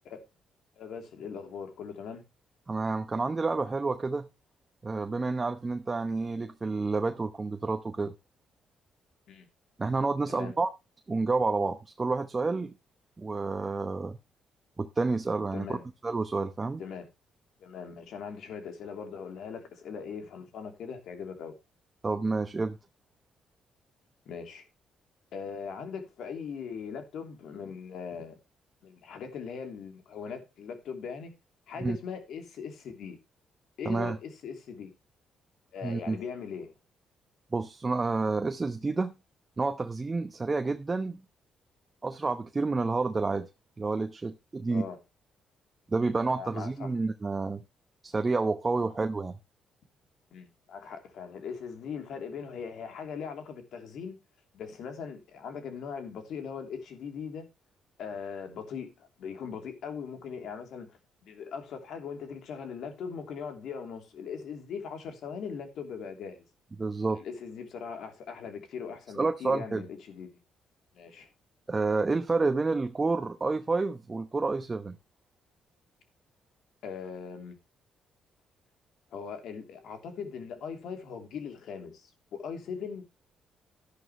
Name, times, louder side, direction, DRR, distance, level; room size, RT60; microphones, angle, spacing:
voice 1, 0.8-2.2 9.3-9.5 10.3-10.5 15.5-15.8 16.8-17.1 17.6-21.5 24.2-24.6 25.3-28.4 28.8-31.3 31.7-33.2 33.8-34.9 35.7-36.7 44.7-45.0 46.0-46.1 46.4-46.9 50.3-54.2 54.5-57.5 58.0-66.5 67.1-70.3 70.9-71.3 76.8-77.6 79.1-83.1, left 6 dB, 75° left, 3.0 m, -40 dB
voice 2, 2.7-4.3 4.8-8.1 9.8-10.7 11.1-12.7 13.2-14.2 14.8-15.8 16.0-16.8 22.0-22.8 31.8-32.0 33.8-34.2 35.8-36.2 37.5-39.1 39.6-41.2 42.0-43.5 43.8-44.8 45.9-47.6 48.0-49.3 66.8-67.2 69.1-69.8 71.7-75.0, right 3 dB, 25° right, 0.9 m, -29 dB
11.5 x 11.0 x 3.1 m
cardioid pair, 90°, 0 cm